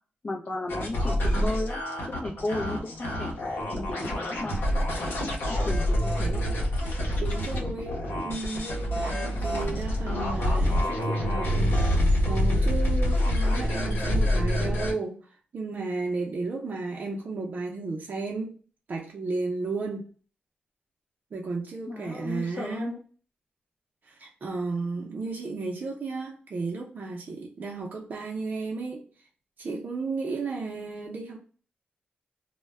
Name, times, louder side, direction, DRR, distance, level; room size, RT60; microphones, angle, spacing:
voice 1, 0.2-1.8 2.1-4.7 5.5-6.4 21.9-23.0, left 2 dB, 40° left, 0.5 m, -34 dB
sound 1, 0.7-14.9, equal, 85° left, 0.8 m, -26 dB
voice 2, 7.2-18.6 18.9-20.1 21.3-23.0 24.0-29.0 29.6-31.4, right 3 dB, 55° right, 0.5 m, -34 dB
2.2 x 2.1 x 3.3 m
cardioid pair, 75°, 3 cm